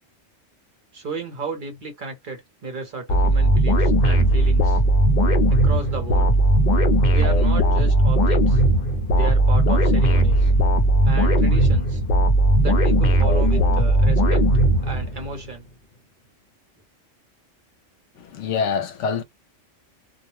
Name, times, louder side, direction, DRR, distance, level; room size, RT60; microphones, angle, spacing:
voice 1, 0.9-4.8 5.5-6.3 7.1-8.6 9.1-10.5 11.0-12.0 12.6-14.4 14.8-15.6, right 3 dB, 45° right, 0.8 m, -33 dB
sound 1, 3.1-15.4, right 1 dB, 50° left, 0.6 m, -18 dB
voice 2, 18.2-19.2, left 6 dB, 75° left, 0.9 m, -25 dB
2.3 x 2.0 x 3.0 m
omnidirectional pair, 1.3 m